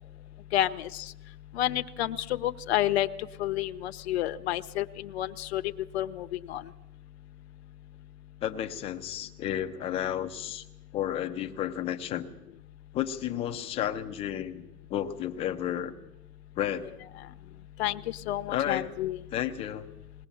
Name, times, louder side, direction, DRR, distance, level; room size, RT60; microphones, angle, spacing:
voice 1, 0.5-1.1 1.5-3.1 3.4-5.6 5.9-6.6 17.8-19.2, left 13 dB, 45° left, 8 dB, 1.1 m, -30 dB
voice 2, 8.4-10.6 10.9-12.3 12.9-15.9 16.6-16.9 18.5-18.9 19.3-19.9, left 11 dB, 15° left, 6 dB, 0.7 m, -32 dB
20.0 x 20.0 x 7.2 m, 0.91 s
hypercardioid pair, 150°, 46 cm